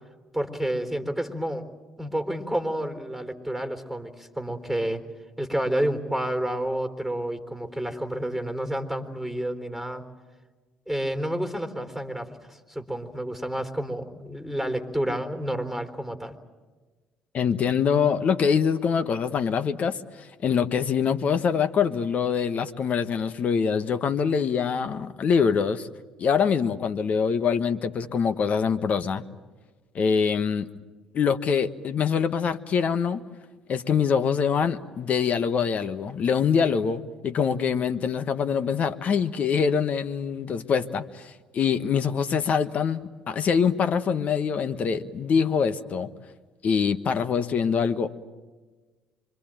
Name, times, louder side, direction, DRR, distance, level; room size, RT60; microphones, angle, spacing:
voice 1, 0.3-1.7 2.0-5.0 5.4-10.0 10.9-16.3, right 1 dB, ahead, 7 dB, 4.0 m, -30 dB
voice 2, 17.3-25.9 26.2-29.2 29.9-30.7 31.1-33.2 33.7-46.1 46.6-48.1, left 6 dB, 50° left, 11 dB, 1.4 m, -24 dB
25.5 x 24.5 x 9.1 m, 1.3 s
hypercardioid pair, 55°, 3 cm